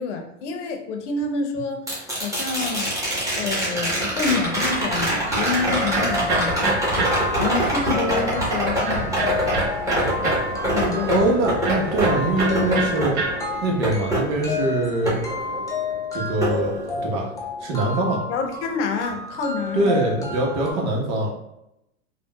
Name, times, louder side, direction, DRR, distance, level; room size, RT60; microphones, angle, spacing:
voice 1, 0.0-1.9 2.2-3.0 3.4-6.6 7.4-9.4 10.6-11.1 18.3-19.9, left 4 dB, 70° left, 4 dB, 0.8 m, -27 dB
sound 1, 1.9-16.0 16.4-17.4 19.7-19.8, right 1 dB, 10° right, 1.2 m, -25 dB
Electric guitar, 4.8-13.9, right 3 dB, 45° right, 0.9 m, -31 dB
sound 2, 5.2-20.7, left 3 dB, 10° left, 0.5 m, -32 dB
voice 2, 11.1-13.1 13.6-15.2 16.1-16.7 17.0-17.3 17.6-18.2 19.7-21.3, right 1 dB, 65° right, -1 dB, 1.2 m, -23 dB
3.6 x 2.4 x 2.3 m, 0.84 s
hypercardioid pair, 105°, 37 cm